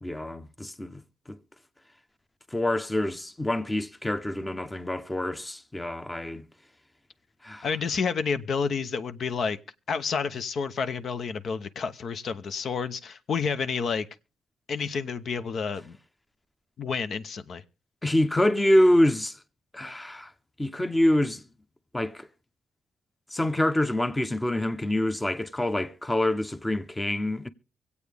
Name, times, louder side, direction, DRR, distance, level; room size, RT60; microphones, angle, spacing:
voice 1, 0.0-1.0 1.3-1.4 2.5-6.4 7.4-7.7 18.0-19.4 19.7-20.3 20.6-21.4 21.9-22.3 23.3-27.5, left 1 dB, 15° left, 0.8 m, -26 dB
voice 2, 7.6-9.6 9.9-14.1 14.7-16.0 16.8-17.6, left 5 dB, 60° left, 0.8 m, -29 dB
24.5 x 8.3 x 3.5 m
cardioid pair, 90°, 0 cm